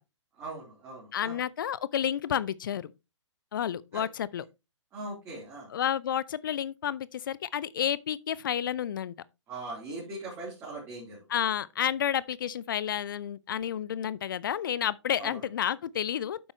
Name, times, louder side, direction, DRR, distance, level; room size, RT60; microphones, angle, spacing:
voice 1, 0.4-1.4 3.9-4.1 4.9-5.7 9.5-11.3 15.2-15.4, right 2 dB, 20° right, 3.4 m, -40 dB
voice 2, 1.1-2.9 3.5-4.4 5.7-9.1 11.3-16.5, left 9 dB, 45° left, 0.5 m, -30 dB
9.6 x 7.8 x 3.0 m
figure-of-eight pair, 125°, 16 cm